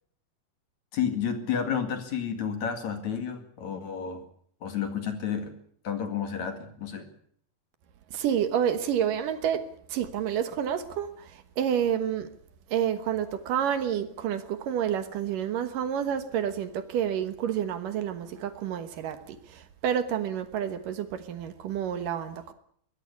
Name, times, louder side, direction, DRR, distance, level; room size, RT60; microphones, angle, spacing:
voice 1, 0.9-4.2 4.6-5.5 5.8-7.0, left 7 dB, 55° left, 7 dB, 3.2 m, -31 dB
voice 2, 8.1-9.6 9.9-12.3 12.7-22.5, right 9 dB, 70° right, 10 dB, 2.7 m, -29 dB
22.5 x 16.5 x 8.3 m, 0.62 s
omnidirectional pair, 4.3 m